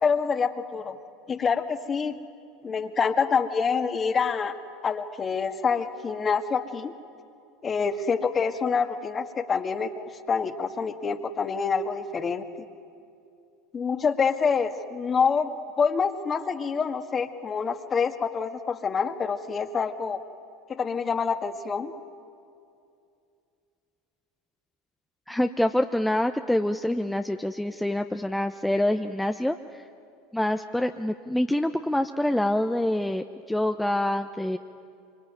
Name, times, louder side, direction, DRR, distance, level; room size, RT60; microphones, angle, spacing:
voice 1, 0.0-1.0 1.3-2.2 2.6-4.6 4.8-6.9 7.6-12.5 13.7-20.2 20.7-21.9, left 5 dB, 30° left, 8 dB, 1.8 m, -26 dB
voice 2, 25.3-29.8 30.3-34.6, left 1 dB, 5° left, 6 dB, 0.8 m, -26 dB
25.0 x 24.5 x 9.2 m, 2.5 s
hypercardioid pair, 80°, 0 cm